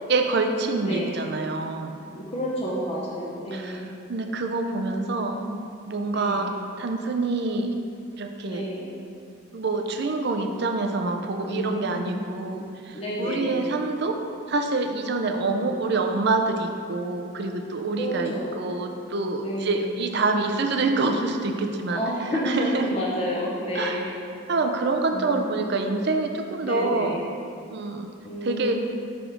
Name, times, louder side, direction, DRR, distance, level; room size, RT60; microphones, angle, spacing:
voice 1, 0.1-2.0 3.5-5.4 5.9-6.5 6.8-7.7 8.2-8.7 9.5-14.2 14.5-22.0 22.5-22.8 23.7-24.0 24.5-27.2 27.7-28.1 28.4-28.7, right 3 dB, 50° right, 4 dB, 0.5 m, -26 dB
voice 2, 0.8-1.1 2.1-3.9 4.9-5.6 6.0-6.5 8.4-9.0 11.4-12.2 12.9-13.7 15.3-16.0 18.0-18.6 19.4-19.9 21.9-24.1 25.1-25.6 26.6-27.2 28.2-28.7, equal, 30° left, -6 dB, 0.8 m, -30 dB
6.0 x 5.0 x 5.0 m, 2.5 s
head